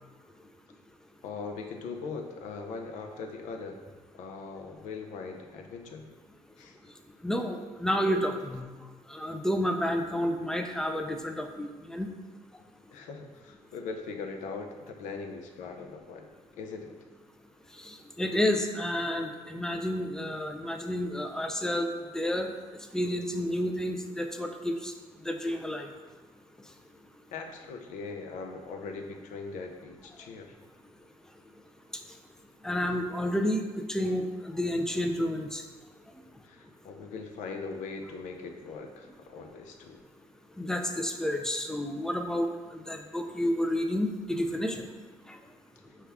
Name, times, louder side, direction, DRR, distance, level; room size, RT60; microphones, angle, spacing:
voice 1, 1.2-3.8 4.1-6.0 6.6-6.8 12.9-16.9 27.3-30.6 36.4-40.0, left 4 dB, 80° left, 4 dB, 0.5 m, -40 dB
voice 2, 7.2-8.6 9.1-12.1 17.8-21.9 22.1-22.5 22.9-24.9 25.2-25.9 32.6-35.6 40.6-42.5 42.7-44.9 45.3-45.4, left 1 dB, 5° left, 4 dB, 0.3 m, -30 dB
5.5 x 2.3 x 3.4 m, 1.3 s
cardioid pair, 115°, 12 cm